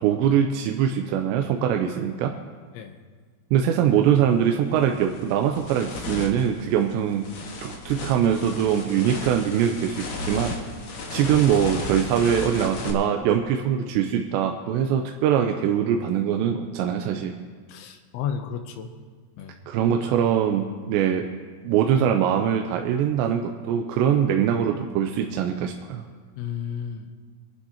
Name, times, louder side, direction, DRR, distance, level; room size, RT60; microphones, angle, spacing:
voice 1, 0.0-2.4 3.5-7.3 7.6-10.5 11.1-17.3 19.7-21.3 21.6-26.0, right 9 dB, 85° right, 3 dB, 2.9 m, -22 dB
sound 1, 4.1-4.2 4.7-12.9, left 2 dB, 65° left, 1.8 m, -34 dB
voice 2, 17.7-18.9 19.4-19.6 19.9-20.0 26.4-27.1, left 8 dB, 90° left, 6 dB, 3.1 m, -32 dB
23.5 x 11.5 x 2.9 m, 1.5 s
omnidirectional pair, 5.1 m